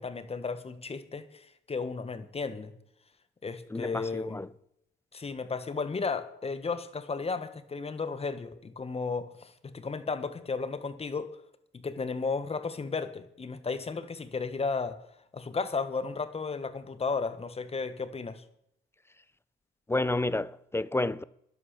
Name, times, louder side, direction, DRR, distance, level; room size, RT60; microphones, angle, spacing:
voice 1, 0.0-2.7 3.4-4.4 5.1-11.3 11.8-15.0 15.3-18.4, left 4 dB, 30° left, 1.5 m, -34 dB
voice 2, 3.7-4.5 19.9-21.2, left 2 dB, 10° left, 0.5 m, -30 dB
11.5 x 11.0 x 6.8 m
cardioid pair, 90°, 20 cm